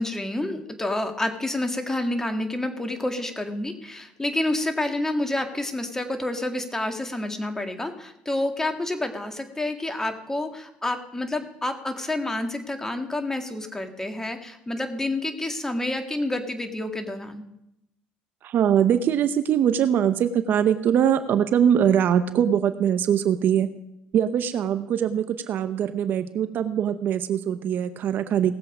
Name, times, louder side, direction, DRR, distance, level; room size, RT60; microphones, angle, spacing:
voice 1, 0.0-17.4, left 1 dB, 10° left, 6 dB, 2.0 m, -29 dB
voice 2, 18.4-23.7 24.1-28.5, right 9 dB, 55° right, 12 dB, 0.8 m, -22 dB
19.0 x 7.6 x 5.1 m, 0.83 s
supercardioid pair, 85°, 4 cm